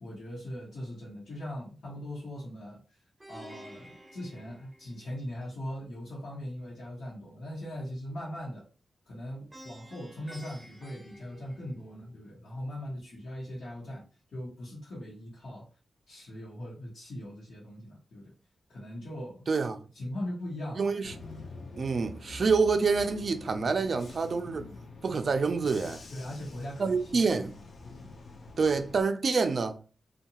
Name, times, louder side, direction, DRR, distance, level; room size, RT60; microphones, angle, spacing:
voice 1, 0.0-3.0 3.3-8.7 9.1-14.0 14.3-15.7 16.1-18.3 18.7-19.5 19.9-20.9 26.1-27.5, left 1 dB, 90° left, 0.9 m, -40 dB
Plucked string instrument, 3.2-5.4 9.5-12.1, right 1 dB, 10° right, 0.6 m, -50 dB
voice 2, 19.5-19.8 20.8-21.1 21.8-24.7 25.0-26.0 26.8-27.5 28.6-29.8, right 4 dB, 50° right, 0.3 m, -27 dB
Bus / Engine, 21.0-29.0, left 2 dB, 60° left, 0.5 m, -46 dB
2.7 x 2.2 x 2.8 m
wide cardioid pair, 145°, 0 cm